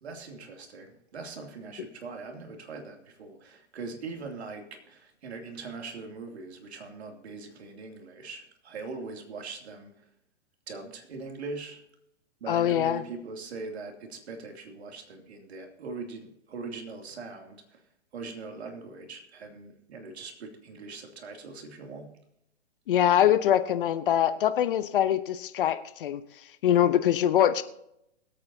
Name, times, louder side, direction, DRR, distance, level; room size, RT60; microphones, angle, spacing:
voice 1, 0.0-9.9 10.7-11.8 12.4-17.6 18.1-22.1, right 4 dB, 60° right, 3 dB, 2.7 m, -41 dB
voice 2, 12.5-13.0 22.9-26.2 26.6-27.6, left 10 dB, 45° left, 12 dB, 0.8 m, -23 dB
22.5 x 8.7 x 2.8 m, 0.79 s
hypercardioid pair, 135°, 36 cm